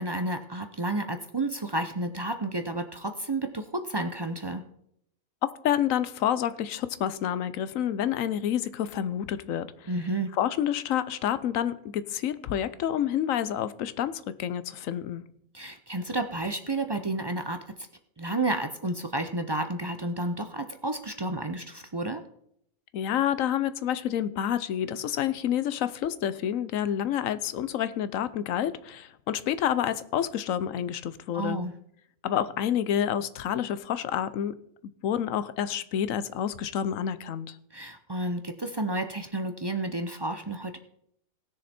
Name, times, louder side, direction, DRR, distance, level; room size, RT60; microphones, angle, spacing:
voice 1, 0.0-4.6 9.9-10.3 15.5-17.6 18.2-22.2 31.3-31.7 37.7-40.8, right 2 dB, 35° right, 0.4 m, -31 dB
voice 2, 5.6-9.9 10.4-15.2 22.9-31.6 32.2-34.5 35.0-37.6, left 10 dB, 80° left, 1.1 m, -28 dB
18.0 x 6.6 x 4.3 m
omnidirectional pair, 1.4 m